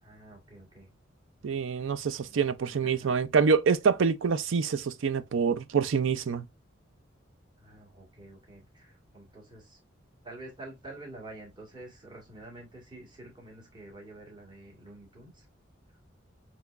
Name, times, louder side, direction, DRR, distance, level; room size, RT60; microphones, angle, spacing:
voice 1, 0.0-0.9 1.8-3.2 7.6-9.8 10.2-15.5, right 2 dB, 25° right, 1.6 m, -48 dB
voice 2, 1.4-6.5, right 5 dB, 85° right, 0.5 m, -26 dB
5.8 x 3.0 x 2.4 m
head